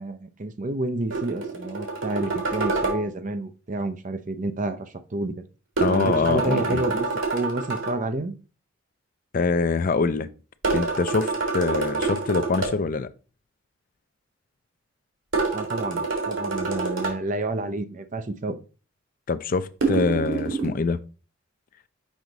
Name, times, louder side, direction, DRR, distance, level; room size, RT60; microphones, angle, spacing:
voice 1, 0.0-5.4 5.9-8.3 15.5-18.6, right 2 dB, 40° right, 0.6 m, -29 dB
sound 1, 1.1-3.0 5.8-8.0 10.6-12.7 15.3-17.2 19.8-20.7, right 3 dB, 90° right, 2.0 m, -27 dB
voice 2, 5.8-6.8 9.3-10.3 10.7-13.1 19.3-21.0, left 4 dB, 45° left, 0.4 m, -24 dB
6.3 x 4.8 x 3.9 m
head